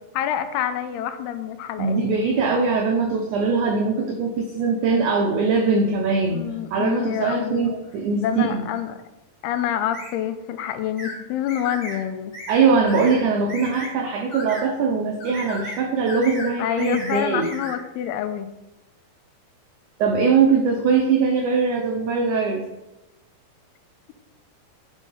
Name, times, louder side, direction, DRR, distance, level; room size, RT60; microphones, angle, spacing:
voice 1, 0.2-2.0 6.3-7.7 8.2-9.0 9.4-12.3 16.6-18.5, left 10 dB, 90° left, 9 dB, 2.6 m, -27 dB
voice 2, 1.8-6.4 6.7-8.7 12.5-17.5 20.0-22.6, right 4 dB, 90° right, 3 dB, 1.7 m, -21 dB
sound 1, 9.9-10.1 11.0-11.2 11.5-12.0 12.3-12.6 12.9-13.2 13.5-13.9 14.3-14.6 15.2-15.8 16.1-16.5 16.8-17.7, left 1 dB, 35° left, 3.7 m, -35 dB
10.0 x 4.5 x 5.6 m, 0.99 s
omnidirectional pair, 4.6 m